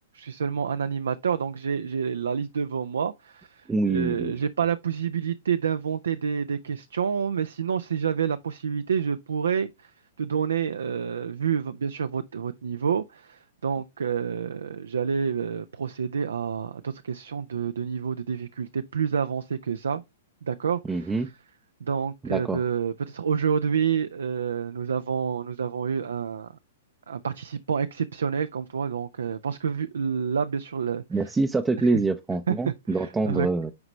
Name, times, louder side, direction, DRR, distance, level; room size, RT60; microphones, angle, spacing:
voice 1, 0.1-9.9 10.2-20.0 20.4-21.3 21.8-26.5 27.1-31.0 31.8-31.9 32.5-33.5, right 7 dB, 70° right, 0.4 m, -28 dB
voice 2, 3.7-4.4 20.9-21.3 22.2-22.6 31.1-33.7, right 3 dB, 10° right, 0.5 m, -25 dB
9.5 x 4.9 x 3.1 m
figure-of-eight pair, 105°, 0 cm